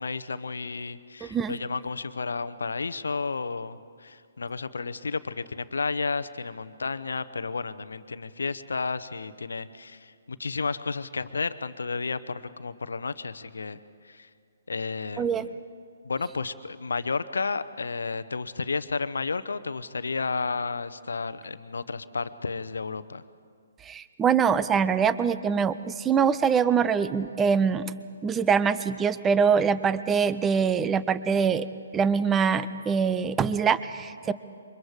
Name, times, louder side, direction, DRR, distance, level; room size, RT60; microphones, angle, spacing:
voice 1, 0.0-14.3 14.7-15.5 16.0-23.2, left 4 dB, 70° left, 13 dB, 0.9 m, -32 dB
voice 2, 1.2-1.6 15.2-15.5 23.8-27.9 28.2-31.7 31.9-34.3, right 6 dB, 15° right, 15 dB, 0.6 m, -24 dB
28.0 x 24.0 x 5.0 m, 2.2 s
figure-of-eight pair, 130°, 0 cm